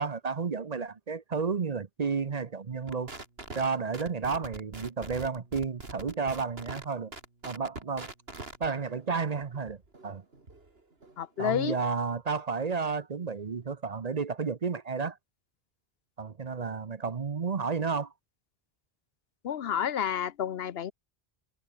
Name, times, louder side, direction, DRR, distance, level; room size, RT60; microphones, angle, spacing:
voice 1, 0.0-3.1 3.5-7.1 7.4-8.1 8.6-9.8 10.0-10.2 11.4-15.2 16.2-18.1, right 5 dB, 45° right, 0.9 m, -32 dB
sound 1, 2.9-11.6, right 3 dB, 75° right, 3.3 m, -44 dB
voice 2, 11.2-11.8 19.4-20.9, left 9 dB, 75° left, 1.0 m, -30 dB
omnidirectional pair, 1.0 m